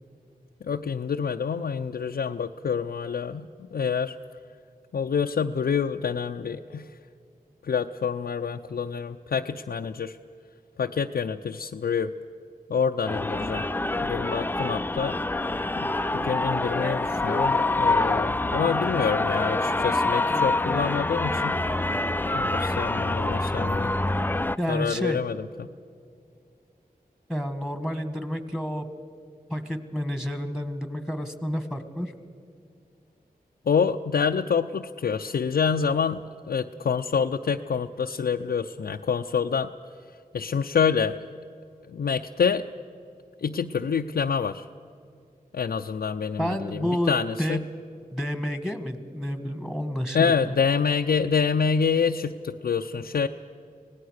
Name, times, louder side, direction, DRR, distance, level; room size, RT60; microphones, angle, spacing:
voice 1, 0.6-4.2 4.9-6.8 7.6-10.2 10.8-12.1 12.7-13.6 14.0-15.2 15.8-21.6 22.3-23.9 24.7-25.7 33.7-39.7 40.3-41.2 41.9-42.6 43.4-44.7 45.5-47.6 50.1-53.3, left 6 dB, 85° left, 4 dB, 0.5 m, -27 dB
sound 1, 13.1-24.6, left 2 dB, 15° left, 0.4 m, -26 dB
voice 2, 24.6-25.2 27.3-28.9 29.5-32.1 46.4-47.6 48.1-50.6, equal, 5° right, 10 dB, 1.8 m, -30 dB
25.0 x 18.5 x 6.5 m, 2.4 s
wide cardioid pair, 70°, 16 cm